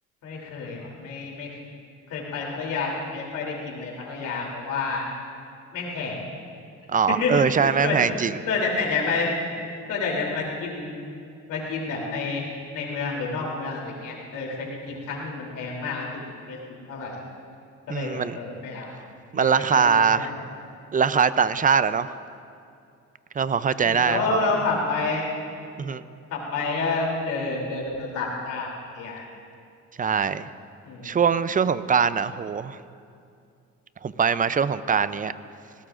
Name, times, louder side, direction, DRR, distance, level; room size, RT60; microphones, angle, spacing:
voice 1, 0.2-1.5 2.1-5.0 5.7-6.2 7.1-8.1 8.5-9.3 9.9-10.9 11.5-12.4 12.7-16.2 16.5-16.6 16.9-17.2 17.9-18.9 19.3-19.8 20.1-20.3 23.8-25.2 26.3-28.7 28.9-29.3 30.8-31.2, left 4 dB, 90° left, -2 dB, 3.1 m, -29 dB
voice 2, 6.9-8.4 17.9-18.4 19.3-20.3 20.9-22.1 23.3-24.5 25.8-26.0 30.0-30.5 31.0-32.8 34.0-35.3, right 6 dB, 25° right, 14 dB, 0.5 m, -22 dB
20.5 x 17.5 x 2.5 m, 2.4 s
cardioid pair, 90°, 30 cm